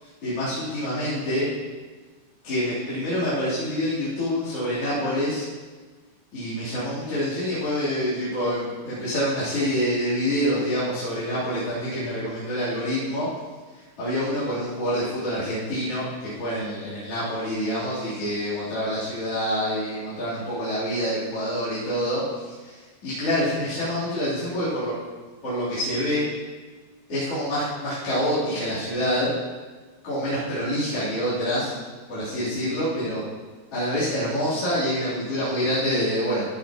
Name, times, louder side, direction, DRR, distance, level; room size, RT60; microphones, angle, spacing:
voice 1, 0.0-1.5 2.4-5.5 6.3-13.3 14.0-24.9 25.4-26.3 27.1-29.3 30.0-31.8 32.1-33.2 33.7-36.5, equal, 35° left, -12 dB, 4.2 m, -26 dB
15.5 x 9.4 x 3.0 m, 1.4 s
omnidirectional pair, 4.9 m